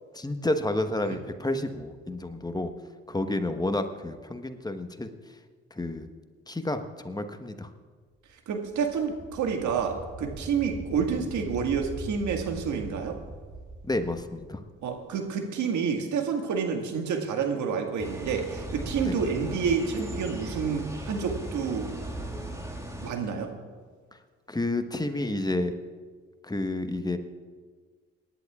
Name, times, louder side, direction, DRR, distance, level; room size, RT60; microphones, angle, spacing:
voice 1, 0.1-2.7 3.1-5.1 5.7-6.1 6.5-7.7 13.8-14.6 19.0-19.2 24.5-25.7 26.4-27.2, left 2 dB, 10° left, 8 dB, 1.2 m, -30 dB
sound 1, 8.5-15.3, right 1 dB, 25° right, 4.6 m, -42 dB
voice 2, 8.5-13.2 14.8-21.9 23.0-23.5, right 6 dB, 60° right, 4 dB, 1.9 m, -29 dB
sound 2, 18.0-23.1, right 1 dB, 10° right, 1.9 m, -37 dB
27.0 x 11.0 x 2.4 m, 1.5 s
hypercardioid pair, 50°, 33 cm